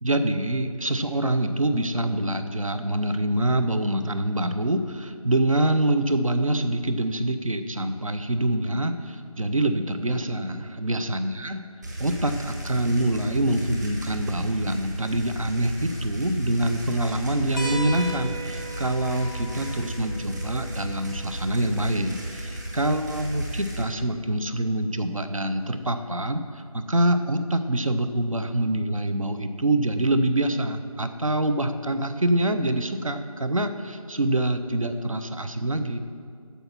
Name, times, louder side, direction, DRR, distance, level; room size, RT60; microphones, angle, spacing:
voice 1, 0.0-11.6 12.0-23.4 23.8-36.0, right 1 dB, 65° right, 9 dB, 0.8 m, -25 dB
sound 1, 11.8-23.8, right 1 dB, 30° right, 1.5 m, -34 dB
sound 2, 17.6-22.6 24.2-24.3 25.9-26.0, equal, ahead, 0.5 m, -39 dB
10.0 x 7.1 x 6.0 m, 2.2 s
figure-of-eight pair, 170°, 19 cm